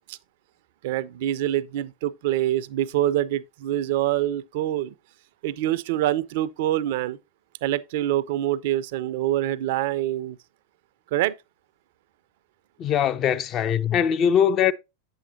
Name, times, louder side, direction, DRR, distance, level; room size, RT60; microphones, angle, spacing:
voice 1, 0.8-4.9 5.4-7.2 7.6-10.4 11.1-11.3, right 13 dB, 50° right, 0.4 m, -25 dB
voice 2, 12.8-14.7, left 8 dB, 30° left, 0.4 m, -21 dB
8.6 x 7.0 x 2.6 m
figure-of-eight pair, 90°, 0 cm